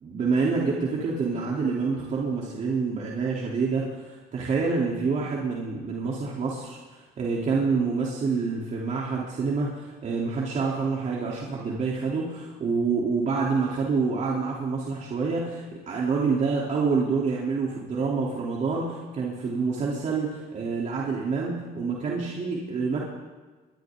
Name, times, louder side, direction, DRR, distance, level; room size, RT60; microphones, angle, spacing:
voice 1, 0.0-23.0, right 4 dB, 45° right, -4 dB, 3.7 m, -27 dB
29.5 x 23.5 x 4.0 m, 1.3 s
cardioid pair, 110°, 17 cm